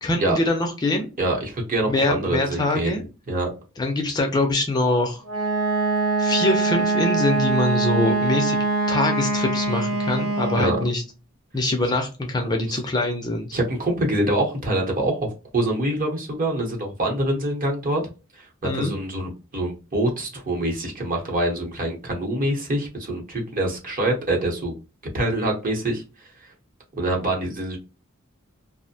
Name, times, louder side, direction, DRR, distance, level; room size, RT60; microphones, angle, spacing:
voice 1, 0.0-1.1 1.9-3.0 3.8-5.2 6.2-8.6 8.9-11.0 11.5-13.5 18.6-18.9, left 2 dB, 20° left, 3 dB, 0.4 m, -24 dB
voice 2, 1.2-3.5 10.5-10.8 13.5-18.0 18.7-24.8 25.1-26.0 26.9-27.8, right 1 dB, 40° right, 0 dB, 0.9 m, -25 dB
Wind instrument woodwind instrument, 5.2-10.9, right 3 dB, 90° right, 1.1 m, -23 dB
2.5 x 2.1 x 2.6 m, 0.31 s
head